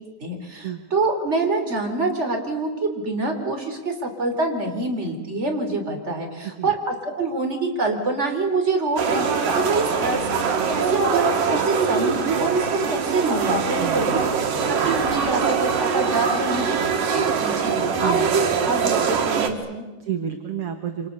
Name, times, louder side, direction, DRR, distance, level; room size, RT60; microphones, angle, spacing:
voice 1, 0.2-10.4 10.7-14.2 14.7-19.9, right 3 dB, 20° right, 3 dB, 3.9 m, -26 dB
sound 1, 9.0-19.5, right 5 dB, 90° right, 3.7 m, -23 dB
voice 2, 13.8-14.3 18.0-18.3 20.0-21.1, right 9 dB, 50° right, 5 dB, 2.2 m, -30 dB
28.5 x 26.0 x 6.9 m, 1.2 s
omnidirectional pair, 3.8 m